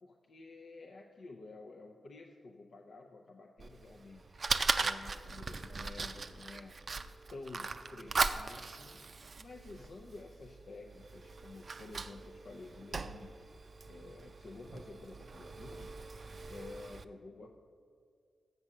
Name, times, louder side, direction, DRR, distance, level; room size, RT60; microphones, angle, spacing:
voice 1, 0.0-4.4 4.8-6.8 7.3-9.0 9.4-13.4 13.8-16.0 16.5-17.6, left 3 dB, 70° left, 1 dB, 0.5 m, -51 dB
Fire, 3.6-17.0, right 4 dB, 55° right, 0.4 m, -39 dB
7.5 x 6.1 x 6.4 m, 2.2 s
cardioid pair, 45°, 0 cm